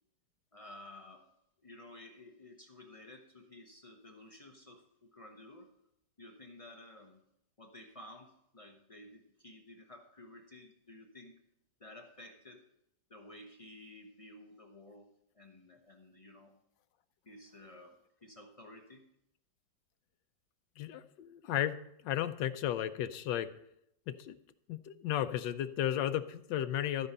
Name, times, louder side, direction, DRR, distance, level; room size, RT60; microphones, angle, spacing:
voice 1, 0.5-1.3 1.6-5.7 6.2-7.2 7.6-11.4 11.8-12.6 13.1-16.5 17.3-19.0, left 1 dB, 35° left, 2 dB, 0.5 m, -53 dB
voice 2, 20.8-21.8 22.0-23.5 24.1-24.3 24.7-27.1, left 11 dB, 85° left, 11 dB, 1.3 m, -34 dB
13.5 x 5.0 x 5.4 m, 0.78 s
omnidirectional pair, 1.9 m